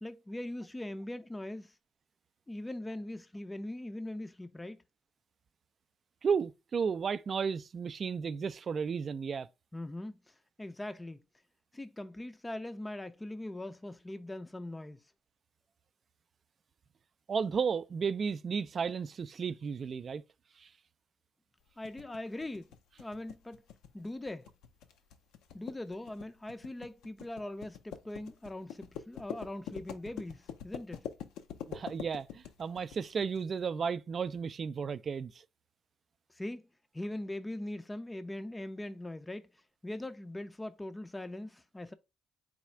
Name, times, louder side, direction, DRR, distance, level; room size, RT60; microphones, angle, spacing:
voice 1, 0.0-1.7 2.5-4.8 9.7-11.2 11.7-15.0 21.8-22.7 23.0-23.6 23.9-24.5 25.5-31.1 36.3-36.7 36.9-39.5 39.8-41.9, left 1 dB, 15° left, 0.4 m, -41 dB
voice 2, 6.2-9.5 17.3-20.2 20.6-20.7 31.7-35.3, right 6 dB, 50° right, 0.3 m, -33 dB
sound 1, 21.8-33.4, left 8 dB, 85° left, 0.5 m, -45 dB
4.1 x 2.4 x 4.3 m
supercardioid pair, 70°, 0 cm